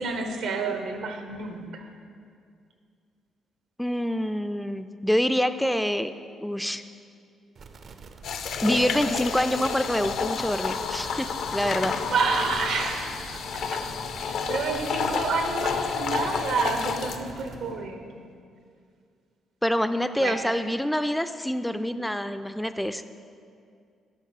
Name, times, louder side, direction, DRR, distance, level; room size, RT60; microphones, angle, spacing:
voice 1, 0.0-1.9 12.0-13.4 13.7-13.8 14.2-18.2 20.2-20.4 22.0-22.1, right 4 dB, 80° right, 5 dB, 1.0 m, -29 dB
voice 2, 3.8-6.1 6.4-6.8 8.6-12.0 19.6-23.0, equal, 5° left, 10 dB, 0.3 m, -26 dB
sound 1, 7.6-17.6, right 4 dB, 50° right, 0.5 m, -46 dB
sound 2, 8.2-17.2, left 6 dB, 70° left, 0.5 m, -30 dB
sound 3, 11.4-17.7, left 3 dB, 90° left, 2.3 m, -47 dB
8.4 x 5.3 x 6.5 m, 2.3 s
cardioid pair, 90°, 0 cm